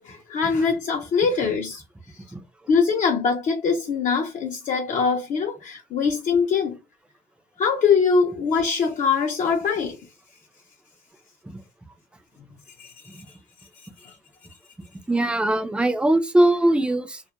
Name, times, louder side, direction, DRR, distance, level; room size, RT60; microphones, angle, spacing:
voice 1, 0.0-1.8 2.1-2.2 2.7-6.8 7.6-10.0 12.8-12.9 14.0-14.1, left 5 dB, 50° left, 0.5 m, -23 dB
voice 2, 15.1-17.2, right 1 dB, 5° right, 0.4 m, -21 dB
2.3 x 2.1 x 2.8 m
cardioid pair, 110°, 17 cm